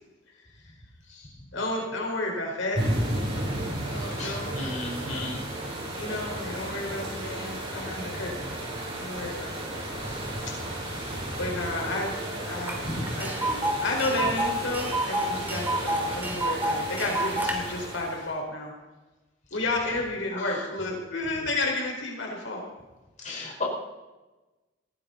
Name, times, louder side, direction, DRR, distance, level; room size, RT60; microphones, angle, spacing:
voice 1, 1.5-3.2 3.9-4.6 5.9-8.5 8.9-9.6 10.8-18.7 19.5-22.6, left 2 dB, 75° left, -1 dB, 4.6 m, -32 dB
sound 1, 2.7-18.3, right 1 dB, 30° right, 6.9 m, -33 dB
voice 2, 3.9-5.4 8.4-8.5 10.1-10.2 12.8-13.1 14.2-14.3 19.7-20.0 20.3-20.7 23.2-23.6, left 2 dB, 40° left, -3 dB, 4.5 m, -36 dB
Tick, 12.7-12.8 13.0-17.5, right 1 dB, 10° right, 2.9 m, -29 dB
20.0 x 15.5 x 4.0 m, 1.1 s
head